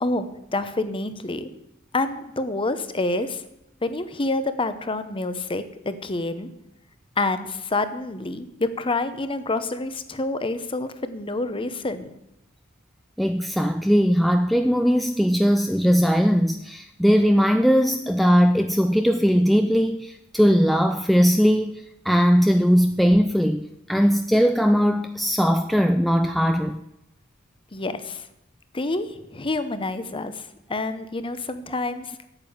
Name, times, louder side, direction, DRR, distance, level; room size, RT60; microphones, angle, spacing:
voice 1, 0.0-1.5 1.9-3.4 3.8-6.5 7.2-12.1 27.7-28.3 28.7-32.3, left 2 dB, 25° left, 11 dB, 0.8 m, -28 dB
voice 2, 13.2-26.8, equal, ahead, 6 dB, 0.4 m, -19 dB
9.0 x 7.6 x 8.7 m, 0.83 s
head